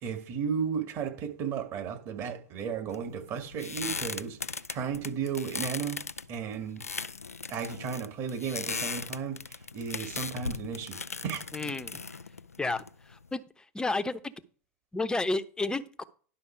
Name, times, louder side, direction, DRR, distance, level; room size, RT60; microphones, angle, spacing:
voice 1, 0.0-6.0 6.3-6.8 7.5-9.4 9.7-11.0 11.2-11.4, right 7 dB, 40° right, 2.2 m, -34 dB
sound 1, 2.9-13.3, left 4 dB, 85° left, 0.4 m, -38 dB
voice 2, 11.5-12.0 12.6-12.8 13.1-13.4 13.7-14.3 14.9-16.0, left 2 dB, 10° left, 0.9 m, -31 dB
11.5 x 5.8 x 4.6 m
figure-of-eight pair, 85°, 8 cm